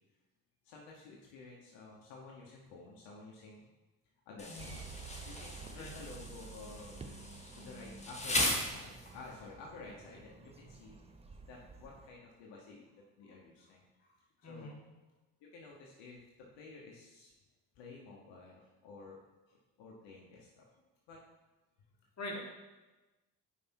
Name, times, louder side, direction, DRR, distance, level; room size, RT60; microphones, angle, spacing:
voice 1, 0.6-3.6 4.3-4.8 5.3-6.9 7.5-11.0 11.5-14.8 15.4-17.3 17.8-19.2 19.5-20.6 21.1-21.2 22.3-22.4, left 3 dB, 65° left, -2 dB, 1.1 m, -52 dB
Insect, 4.4-9.4, left 1 dB, 15° left, 1.5 m, -38 dB
sound 1, 4.6-12.1, right 4 dB, 15° right, 0.6 m, -51 dB
voice 2, 14.4-14.8 22.2-22.4, left 1 dB, 35° left, -1 dB, 1.8 m, -43 dB
5.1 x 4.7 x 4.5 m, 1.1 s
hypercardioid pair, 55°, 47 cm